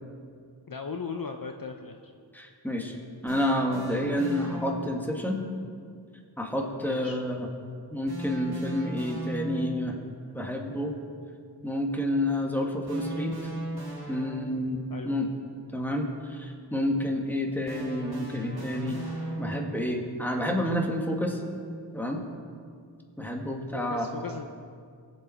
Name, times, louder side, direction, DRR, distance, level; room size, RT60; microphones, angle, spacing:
voice 1, 0.7-2.0 6.8-7.2 14.9-15.1 23.7-24.5, left 5 dB, 50° left, 4 dB, 0.7 m, -37 dB
voice 2, 2.3-3.0 3.2-5.4 6.4-7.5 7.9-9.9 10.3-11.0 11.6-13.3 14.1-15.3 15.7-19.0 19.4-21.4 21.9-22.2 23.2-24.1, left 1 dB, 5° left, 1 dB, 1.9 m, -29 dB
sound 1, 3.3-5.1 8.1-9.9 12.9-14.8 17.7-19.9, right 1 dB, 55° right, 3.1 m, -37 dB
21.5 x 7.5 x 4.3 m, 2.2 s
wide cardioid pair, 55°, 44 cm